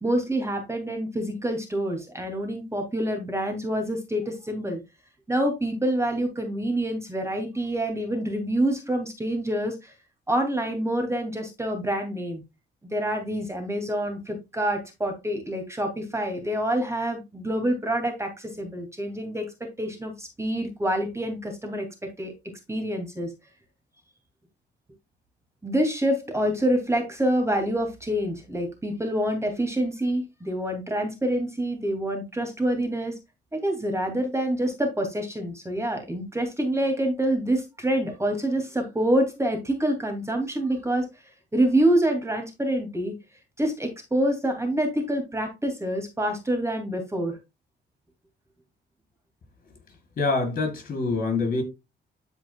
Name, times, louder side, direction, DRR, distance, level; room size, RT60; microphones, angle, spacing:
voice 1, 0.0-4.8 5.3-9.9 10.3-12.4 12.9-19.5 19.8-21.9 22.2-22.3 22.7-23.3 25.6-33.1 33.5-41.1 41.5-43.1 43.6-47.4, right 1 dB, 15° right, 2.8 m, -26 dB
voice 2, 50.2-51.6, left 3 dB, 45° left, 5.2 m, -25 dB
12.5 x 5.0 x 2.4 m
cardioid pair, 90°, 20 cm